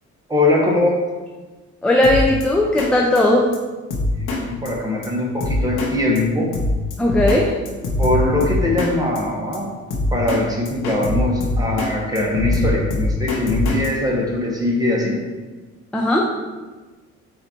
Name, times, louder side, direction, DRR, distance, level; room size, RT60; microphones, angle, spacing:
voice 1, 0.3-1.0 4.2-6.5 8.0-9.7 10.1-15.2, left 2 dB, 10° right, -3 dB, 1.1 m, -21 dB
voice 2, 1.8-3.5 7.0-7.5 15.9-16.3, left 1 dB, 5° left, -2 dB, 0.4 m, -17 dB
Drum kit, 2.0-2.4 2.8-2.9 3.2-3.3 3.5-3.6 3.9-4.4 4.7-4.8 5.0-5.1 5.4-5.9 6.2-6.3 6.5-7.4 7.7-8.9 9.2-9.3 9.5-9.6 9.9-10.4 10.7-11.9 12.2-13.9, left 2 dB, 90° left, 0.8 m, -22 dB
4.1 x 2.7 x 4.3 m, 1.3 s
cardioid pair, 90°, 30 cm